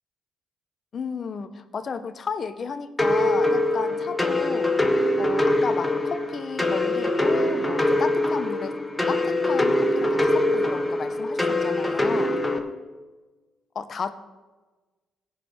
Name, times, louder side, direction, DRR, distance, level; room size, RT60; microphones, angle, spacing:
voice 1, 0.9-4.8 5.2-8.8 9.1-12.4 13.7-14.1, left 5 dB, 45° left, 11 dB, 0.8 m, -33 dB
sound 1, 3.0-12.6, left 1 dB, 10° left, 1.3 m, -23 dB
16.5 x 6.5 x 5.0 m, 1.3 s
cardioid pair, 90°, 0 cm